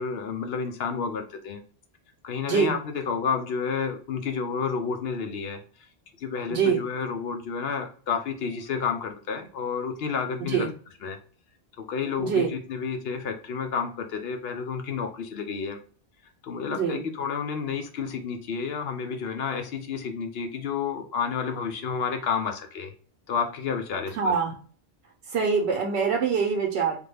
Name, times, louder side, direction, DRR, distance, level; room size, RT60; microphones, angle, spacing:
voice 1, 0.0-1.6 2.2-5.6 6.2-10.7 11.0-11.2 11.8-15.8 16.4-22.9 23.3-24.3, left 6 dB, 70° left, 6 dB, 0.8 m, -30 dB
voice 2, 6.5-6.8 10.5-10.7 12.2-12.5 16.7-17.0 24.2-24.5 25.3-27.0, right 6 dB, 90° right, 1 dB, 0.9 m, -24 dB
3.4 x 2.2 x 3.3 m, 0.42 s
omnidirectional pair, 1.1 m